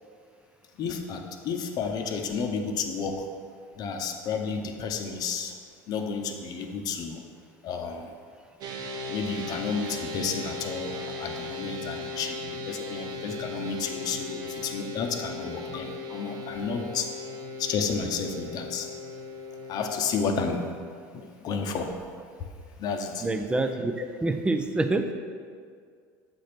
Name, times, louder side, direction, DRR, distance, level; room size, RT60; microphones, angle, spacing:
voice 1, 0.8-3.3 3.7-5.5 5.9-7.2 7.6-8.1 9.0-17.1 17.6-18.9 19.7-20.7 21.1-22.0 22.4-22.5 22.8-23.3, left 5 dB, 50° left, 5 dB, 0.8 m, -31 dB
sound 1, 8.6-20.8, left 2 dB, 50° right, 0.9 m, -37 dB
voice 2, 23.2-23.9 24.2-25.1, right 2 dB, 10° right, 7 dB, 0.5 m, -26 dB
7.8 x 4.4 x 5.1 m, 2.1 s
supercardioid pair, 115°, 9 cm